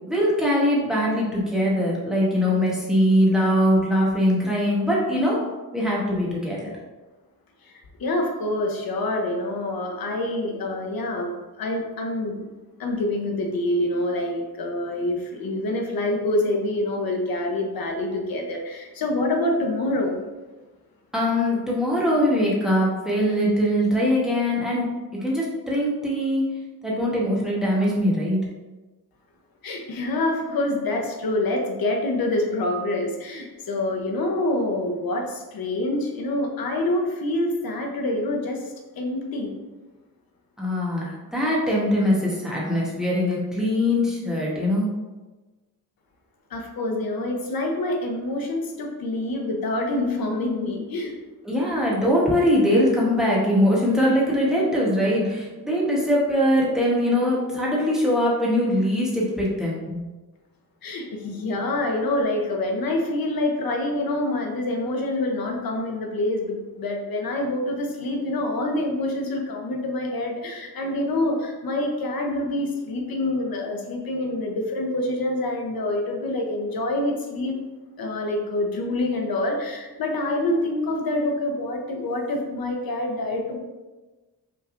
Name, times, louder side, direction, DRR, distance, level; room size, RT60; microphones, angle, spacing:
voice 1, 0.1-5.4 5.7-6.7 21.1-24.9 25.1-26.4 26.8-28.4 40.6-44.9 51.4-60.0, equal, ahead, -5 dB, 0.9 m, -22 dB
voice 2, 8.0-12.4 12.8-20.1 29.6-39.5 46.5-51.1 60.8-77.6 78.0-83.6, left 1 dB, 70° left, 2 dB, 0.8 m, -26 dB
5.7 x 3.3 x 2.5 m, 1.2 s
wide cardioid pair, 165°, 37 cm